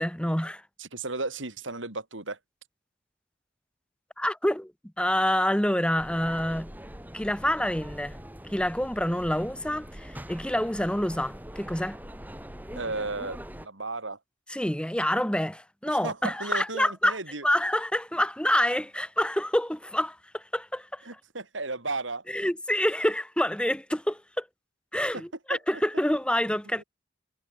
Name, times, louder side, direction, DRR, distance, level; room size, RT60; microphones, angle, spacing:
voice 1, 0.0-0.6 4.2-4.7 5.0-6.7 7.1-8.2 8.5-12.0 14.5-17.2 17.4-21.0 22.3-24.5 24.9-26.8, left 1 dB, 5° left, 2.5 m, -27 dB
voice 2, 0.8-2.4 12.8-14.2 15.9-17.5 21.1-22.2 25.1-25.2 25.5-25.6 26.8-26.9, right 3 dB, 85° right, 5.3 m, -34 dB
sound 1, 6.0-13.7, equal, 10° right, 4.0 m, -43 dB
head